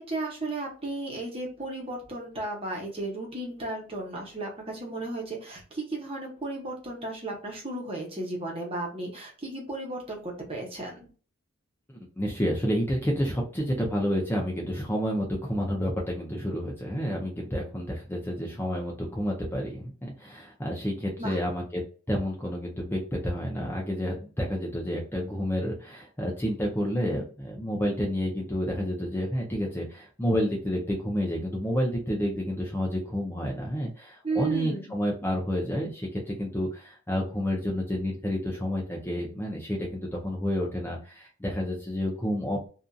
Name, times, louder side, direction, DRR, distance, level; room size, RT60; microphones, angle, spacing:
voice 1, 0.0-11.1 21.2-21.4 34.2-35.0, right 2 dB, 30° right, -1 dB, 1.0 m, -34 dB
voice 2, 11.9-42.7, equal, 10° left, -2 dB, 0.5 m, -30 dB
2.7 x 2.5 x 2.3 m, 0.38 s
head